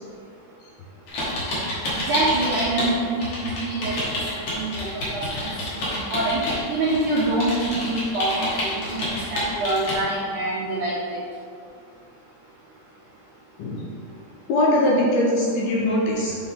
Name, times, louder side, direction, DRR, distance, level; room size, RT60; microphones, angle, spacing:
sound 1, 1.1-2.9 3.2-10.0, left 1 dB, 50° left, 2.7 m, -29 dB
voice 1, 2.1-3.1 3.4-3.9 4.6-5.2 6.1-6.4 6.7-7.6 7.8-8.7 8.9-10.9, right 2 dB, 90° right, -7 dB, 1.7 m, -25 dB
voice 2, 14.5-16.4, left 1 dB, 75° left, -3 dB, 2.4 m, -21 dB
9.7 x 4.5 x 3.7 m, 2.2 s
omnidirectional pair, 5.2 m